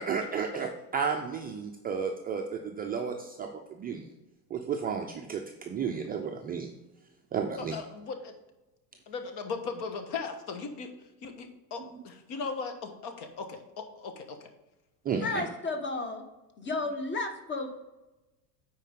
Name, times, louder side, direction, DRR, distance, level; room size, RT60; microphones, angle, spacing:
voice 1, 0.0-4.0 4.5-6.7 7.3-7.8 11.8-11.9 15.1-15.4, right 6 dB, 20° right, 2 dB, 0.4 m, -33 dB
voice 2, 7.6-8.3 9.1-10.9 11.2-14.5, left 4 dB, 55° left, 6 dB, 1.3 m, -38 dB
voice 3, 15.2-16.2 16.6-17.7, left 3 dB, 20° left, 6 dB, 1.2 m, -32 dB
9.1 x 4.6 x 3.6 m, 1.0 s
supercardioid pair, 105°, 50 cm